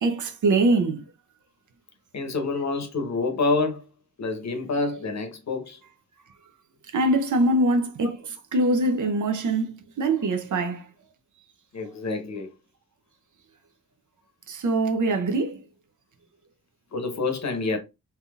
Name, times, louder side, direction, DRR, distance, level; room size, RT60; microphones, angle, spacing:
voice 1, 0.0-1.0 6.9-10.9 14.5-15.6, right 2 dB, 60° right, 0.7 m, -23 dB
voice 2, 2.1-3.8 4.2-5.8 11.7-12.5 16.9-17.8, left 3 dB, 50° left, 0.9 m, -27 dB
3.4 x 2.8 x 2.3 m
cardioid pair, 90°, 35 cm